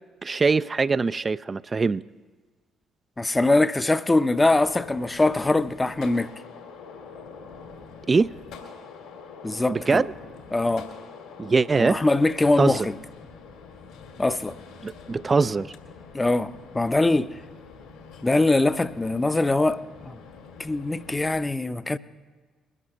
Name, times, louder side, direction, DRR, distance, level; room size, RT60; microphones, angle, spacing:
voice 1, 0.2-2.0 8.1-8.3 9.7-10.1 11.4-12.0 12.6-12.9 14.8-15.7, right 4 dB, 35° right, 0.3 m, -22 dB
voice 2, 3.2-6.3 9.4-10.0 10.5-10.9 11.8-13.0 14.2-14.6 16.1-17.3 18.2-20.2 20.6-22.0, left 2 dB, 20° left, 0.6 m, -22 dB
Gunshot gunfire, 4.3-21.3, left 5 dB, 70° left, 2.1 m, -45 dB
21.5 x 12.0 x 3.2 m
figure-of-eight pair, 45°, 0 cm